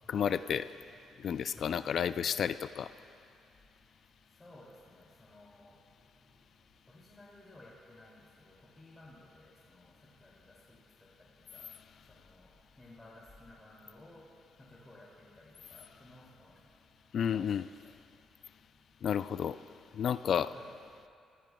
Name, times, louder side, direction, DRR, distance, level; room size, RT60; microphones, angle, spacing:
voice 1, 0.1-0.7 1.2-2.9 17.1-17.7 19.0-19.6 19.9-20.5, left 8 dB, 60° left, 13 dB, 0.4 m, -31 dB
voice 2, 4.4-5.7 6.9-8.2 8.5-9.8 10.2-10.3 11.5-11.6 12.2-12.5 12.8-14.2 14.6-15.3 15.7-16.5 17.3-17.4 20.5-20.7, left 1 dB, 20° left, -6 dB, 2.5 m, -55 dB
27.0 x 14.5 x 2.3 m, 2.4 s
cardioid pair, 90°, 0 cm